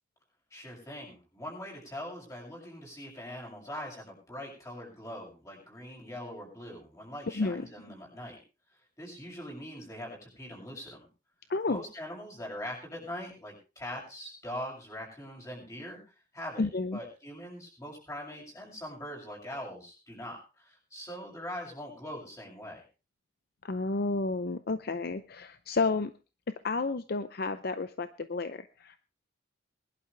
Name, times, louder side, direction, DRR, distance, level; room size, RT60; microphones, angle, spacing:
voice 1, 0.5-8.4 9.0-11.0 11.7-22.8, equal, 15° left, -1 dB, 6.9 m, -42 dB
voice 2, 7.3-7.7 11.5-11.8 16.6-17.0 23.6-26.1 26.6-29.0, left 3 dB, 50° left, 12 dB, 0.6 m, -31 dB
21.5 x 11.5 x 3.4 m, 0.33 s
head